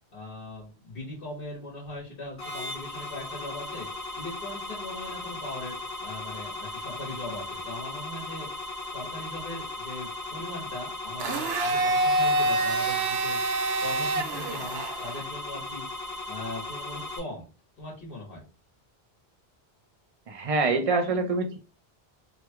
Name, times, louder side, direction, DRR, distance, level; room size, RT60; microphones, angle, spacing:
voice 1, 0.1-3.9 4.2-5.7 6.0-8.5 8.9-15.8 16.3-17.5 17.8-18.4, left 2 dB, 65° left, -5 dB, 1.4 m, -40 dB
sound 1, 2.4-17.2, left 2 dB, 80° left, 1.4 m, -37 dB
Domestic sounds home sounds, 11.2-15.2, right 2 dB, 80° right, 0.8 m, -26 dB
voice 2, 20.3-21.6, right 3 dB, 50° right, 6 dB, 0.4 m, -25 dB
3.1 x 2.9 x 2.2 m, 0.35 s
omnidirectional pair, 1.0 m